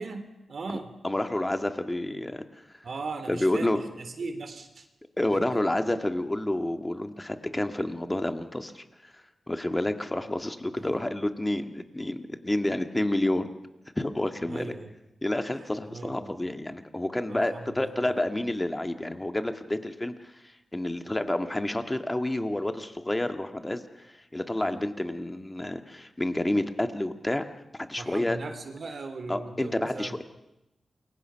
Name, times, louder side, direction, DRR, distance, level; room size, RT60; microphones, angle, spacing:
voice 1, 0.0-0.9 2.8-4.8 5.3-5.6 10.8-11.0 14.5-14.9 15.9-16.3 17.3-18.2 24.6-24.8 28.0-30.2, right 3 dB, 60° right, 8 dB, 3.1 m, -39 dB
voice 2, 1.0-2.4 3.3-3.8 5.2-9.1 9.5-13.5 14.0-14.7 15.2-23.8 24.3-27.5 27.8-28.4 29.3-30.2, left 1 dB, 15° left, 7 dB, 1.8 m, -29 dB
28.0 x 23.0 x 5.8 m, 0.89 s
wide cardioid pair, 95°, 0 cm